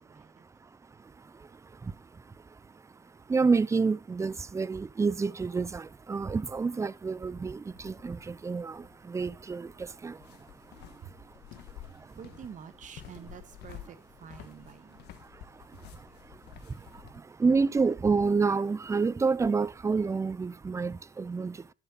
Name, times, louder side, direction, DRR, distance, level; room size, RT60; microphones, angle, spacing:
voice 1, 0.0-0.7 11.0-11.2 11.9-15.2 15.7-15.8, right 8 dB, 50° right, 1.5 m, -49 dB
voice 2, 0.6-11.1 11.6-12.2 15.2-21.7, right 4 dB, 15° right, 0.5 m, -30 dB
sound 1, 7.7-17.2, left 12 dB, 80° left, 1.4 m, -51 dB
11.5 x 7.0 x 5.6 m
cardioid pair, 110°, 17 cm